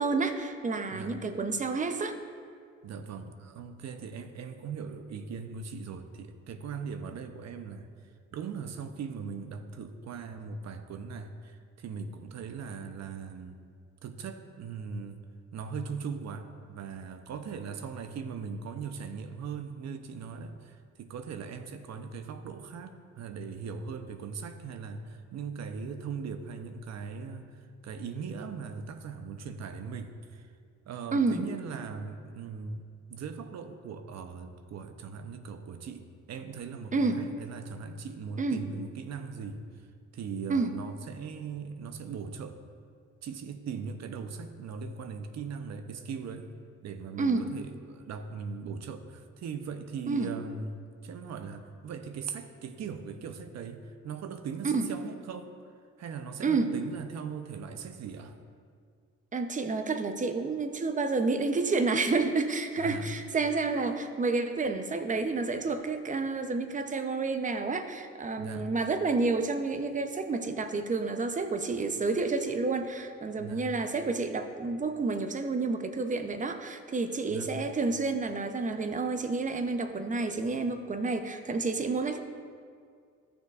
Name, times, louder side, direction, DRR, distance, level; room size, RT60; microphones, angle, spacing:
voice 1, 0.0-2.2 31.1-31.4 36.9-37.2 38.4-38.6 40.5-40.7 47.2-47.5 50.1-50.3 54.6-54.9 56.4-56.7 59.3-82.2, right 3 dB, 25° right, 8 dB, 0.7 m, -29 dB
voice 2, 2.8-7.9 8.3-13.6 14.0-15.2 15.5-30.5 30.9-39.6 40.1-42.6 43.2-46.5 46.8-55.5 56.0-58.4 62.8-63.1 68.3-68.7 73.4-73.7 77.3-77.5, right 5 dB, 60° right, 8 dB, 0.7 m, -39 dB
13.5 x 6.7 x 2.4 m, 2.1 s
cardioid pair, 90°, 30 cm